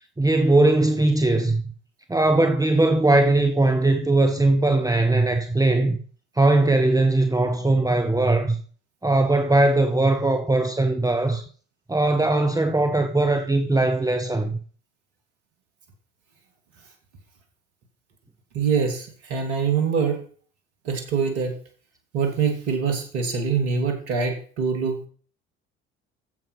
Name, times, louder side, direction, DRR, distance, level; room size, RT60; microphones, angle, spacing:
voice 1, 0.2-1.6 2.1-6.0 6.4-8.6 9.0-11.4 11.9-14.6, right 2 dB, 10° right, 1.3 m, -20 dB
voice 2, 18.5-20.2 20.8-21.5 22.1-25.1, right 6 dB, 70° right, 2.5 m, -24 dB
9.2 x 7.7 x 5.6 m
figure-of-eight pair, 55°, 35 cm